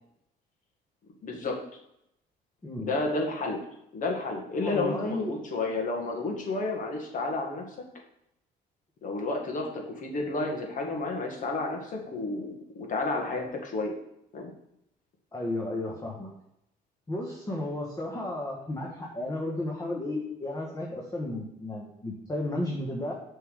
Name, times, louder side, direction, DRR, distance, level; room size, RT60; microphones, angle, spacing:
voice 1, 1.2-1.6 2.8-3.6 3.9-7.7 9.0-13.9 14.3-14.5, left 3 dB, 50° left, 1 dB, 1.7 m, -31 dB
voice 2, 4.6-5.3 15.3-16.3 17.1-23.1, left 1 dB, 20° left, -2 dB, 1.3 m, -33 dB
6.8 x 3.7 x 6.3 m, 0.79 s
cardioid pair, 110°, 17 cm